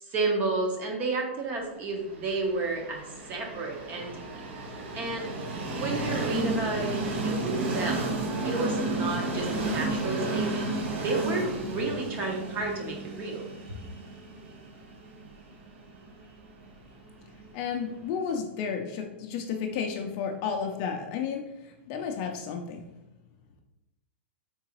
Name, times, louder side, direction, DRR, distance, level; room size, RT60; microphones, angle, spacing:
voice 1, 0.0-4.1 4.9-5.3 5.8-8.1 8.4-10.7 11.0-13.4, right 3 dB, 25° right, 1 dB, 0.8 m, -31 dB
Train, 2.1-17.9, right 2 dB, 70° right, 1.1 m, -33 dB
voice 2, 17.5-22.9, left 6 dB, 40° left, 3 dB, 0.4 m, -32 dB
3.8 x 3.6 x 3.0 m, 0.93 s
supercardioid pair, 160°, 7 cm